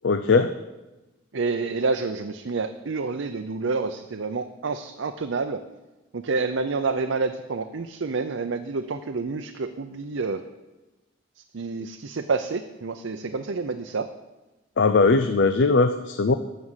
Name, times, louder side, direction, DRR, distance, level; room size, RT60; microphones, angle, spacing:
voice 1, 0.0-0.5 14.8-16.3, left 3 dB, 65° left, 10 dB, 0.5 m, -19 dB
voice 2, 1.3-5.6 6.1-10.4 11.5-14.1, right 4 dB, 85° right, 6 dB, 0.6 m, -28 dB
12.5 x 6.3 x 7.4 m, 1.1 s
head